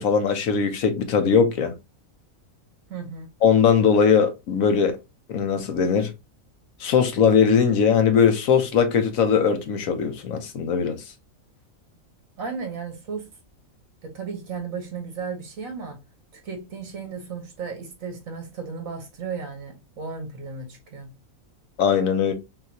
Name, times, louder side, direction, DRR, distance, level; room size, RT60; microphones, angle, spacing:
voice 1, 0.0-1.7 3.4-5.0 5.3-6.1 6.8-11.0 21.8-22.3, left 6 dB, 80° left, 1.2 m, -20 dB
voice 2, 2.9-3.3 12.4-13.3 14.0-16.0 16.3-21.1, right 5 dB, 75° right, 1.7 m, -34 dB
5.7 x 2.6 x 2.7 m
omnidirectional pair, 1.4 m